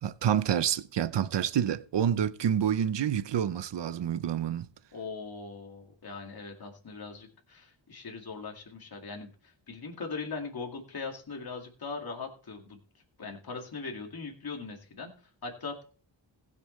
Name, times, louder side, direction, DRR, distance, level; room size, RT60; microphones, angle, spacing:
voice 1, 0.0-4.7, right 9 dB, 65° right, 0.7 m, -28 dB
voice 2, 4.9-12.8 13.2-15.8, left 4 dB, 50° left, 2.1 m, -40 dB
19.5 x 6.8 x 3.2 m
wide cardioid pair, 170°, 45 cm